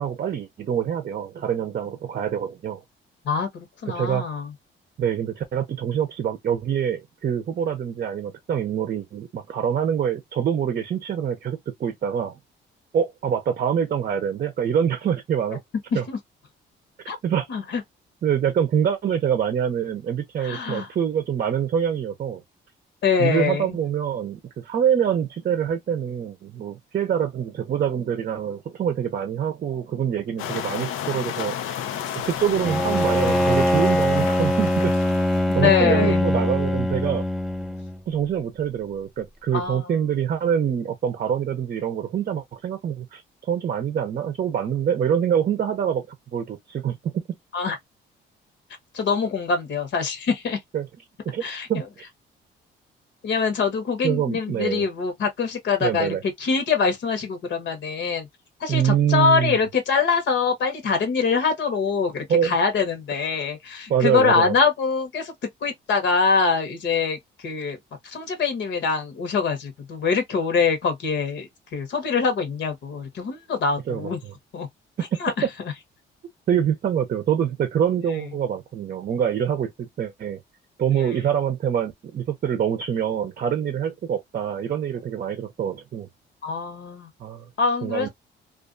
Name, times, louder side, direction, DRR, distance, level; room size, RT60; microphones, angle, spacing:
voice 1, 0.0-2.8 3.9-4.2 5.0-12.4 12.9-15.6 15.9-16.1 17.2-17.5 18.2-22.4 23.2-31.8 32.2-34.9 35.5-37.2 38.1-43.2 43.5-46.1 46.3-47.2 50.7-50.9 51.2-51.4 51.7-52.1 54.0-54.8 55.8-56.2 58.7-59.6 62.3-62.5 63.9-64.5 73.9-74.3 76.5-80.4 80.8-86.1 87.2-87.5 87.8-88.1, right 8 dB, 45° right, 0.6 m, -25 dB
voice 2, 3.2-4.5 16.1-16.2 17.1-17.2 17.5-17.8 20.4-20.9 23.0-23.7 35.5-36.3 39.5-39.9 47.5-47.8 48.9-50.6 51.4-51.8 53.2-58.3 58.6-65.3 65.6-67.8 68.0-74.2 74.5-74.7 75.2-75.3 86.4-87.1 87.6-88.1, left 5 dB, 65° left, 1.0 m, -24 dB
sound 1, 30.4-35.6, left 9 dB, 90° left, 0.5 m, -31 dB
Bowed string instrument, 32.6-38.0, left 1 dB, ahead, 0.4 m, -22 dB
2.4 x 2.2 x 2.4 m
cardioid pair, 90°, 20 cm